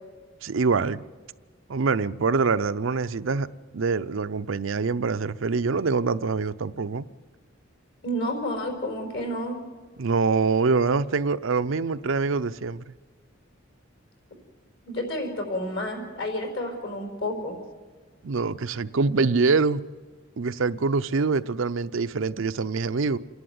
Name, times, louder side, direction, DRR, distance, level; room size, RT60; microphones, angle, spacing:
voice 1, 0.4-1.0 1.7-3.5 3.7-7.1 10.0-12.9 18.2-19.8 20.4-23.2, right 4 dB, 70° right, 0.6 m, -25 dB
voice 2, 8.0-9.6 14.9-17.6, left 1 dB, 60° left, 4.8 m, -30 dB
27.5 x 11.5 x 9.5 m
head